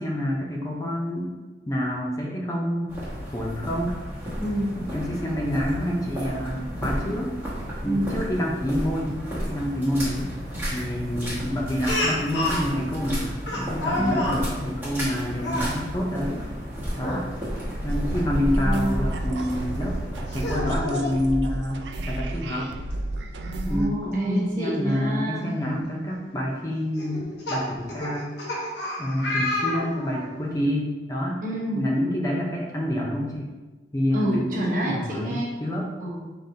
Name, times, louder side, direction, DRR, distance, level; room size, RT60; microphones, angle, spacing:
voice 1, 0.0-1.4 1.7-3.0 3.3-4.0 4.8-7.3 7.8-10.3 10.7-16.4 17.0-17.3 17.8-20.0 20.3-22.7 23.7-27.2 27.5-28.3 29.0-31.4 31.7-33.5 33.9-35.9, equal, 20° left, -1 dB, 0.5 m, -28 dB
sound 1, 2.9-20.8, equal, 10° right, 1.2 m, -32 dB
voice 2, 4.4-4.8 7.8-8.2 14.0-14.3 18.2-19.1 23.4-25.6 31.4-31.9 34.1-35.5 36.0-36.3, equal, 50° right, -4 dB, 1.1 m, -28 dB
Speech, 11.9-12.6 13.5-14.4 15.4-15.7 16.9-17.2 17.6-17.7 19.4-19.5 20.3-21.2 22.5-22.6 22.9-23.0 24.9-25.0 25.6-25.9 27.0-30.3, left 2 dB, 85° left, 1.0 m, -29 dB
sound 2, 17.9-23.9, right 2 dB, 80° right, 0.4 m, -33 dB
5.0 x 3.8 x 2.7 m, 1.2 s
head